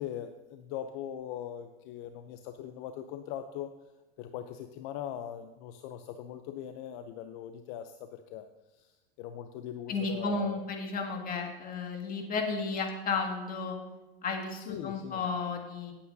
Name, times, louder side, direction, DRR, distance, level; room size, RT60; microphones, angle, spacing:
voice 1, 0.0-3.7 4.2-10.7 14.5-15.2, left 10 dB, 55° left, 8 dB, 0.7 m, -41 dB
voice 2, 9.9-13.8 14.2-15.9, left 4 dB, 30° left, 2 dB, 2.0 m, -33 dB
17.0 x 8.4 x 2.7 m, 1.1 s
supercardioid pair, 125°, 30 cm